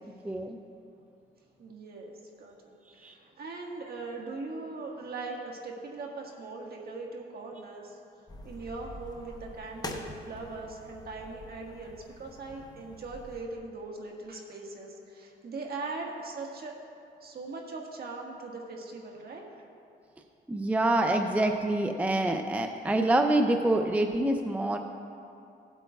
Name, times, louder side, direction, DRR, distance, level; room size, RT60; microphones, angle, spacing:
voice 1, 0.2-0.6 3.0-3.1 20.5-24.8, right 1 dB, 5° right, 5 dB, 0.4 m, -26 dB
voice 2, 1.6-16.8 17.2-19.6, right 3 dB, 50° right, 0 dB, 1.6 m, -40 dB
sound 1, 8.3-13.4, left 2 dB, 20° left, 0.9 m, -45 dB
16.5 x 8.2 x 2.3 m, 2.7 s
cardioid pair, 90°, 20 cm